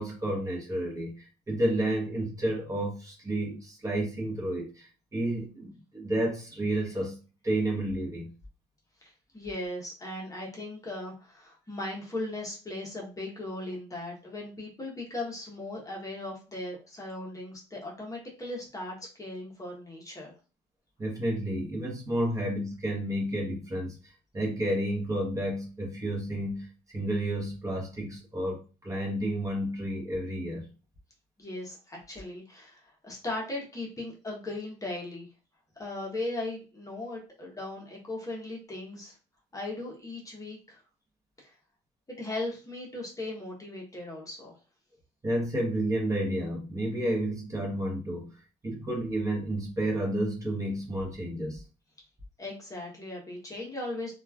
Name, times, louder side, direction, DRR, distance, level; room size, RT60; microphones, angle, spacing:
voice 1, 0.0-7.2 7.4-8.3 21.0-30.7 45.2-48.3 48.6-51.6, right 1 dB, 20° right, -2 dB, 1.0 m, -31 dB
voice 2, 9.0-20.3 31.4-35.3 35.8-39.1 39.5-40.8 41.4-41.5 42.1-44.6 52.4-54.1, left 2 dB, 20° left, -2 dB, 0.9 m, -38 dB
2.9 x 2.3 x 2.3 m, 0.33 s
cardioid pair, 110°, 17 cm